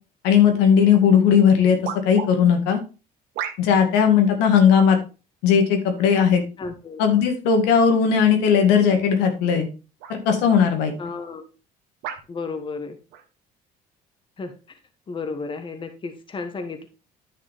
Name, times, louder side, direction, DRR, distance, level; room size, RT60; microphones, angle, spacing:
voice 1, 0.2-1.8 2.1-2.8 3.6-5.0 5.4-6.4 7.0-9.7 10.1-10.9, left 7 dB, 90° left, 5 dB, 2.0 m, -17 dB
sound 1, 0.9-1.0 1.8-2.3 3.3-3.9 4.7-5.0 6.0-6.4 7.2-7.3 9.2-9.4 10.0-10.2 11.0-11.1 12.0-12.3 13.1-13.3, right 9 dB, 80° right, 1.4 m, -34 dB
voice 2, 6.6-7.0 11.0-11.4 12.3-13.0 14.4-14.5 15.1-16.9, left 4 dB, 30° left, 7 dB, 1.4 m, -33 dB
10.0 x 5.9 x 3.6 m, 0.32 s
cardioid pair, 110°, 17 cm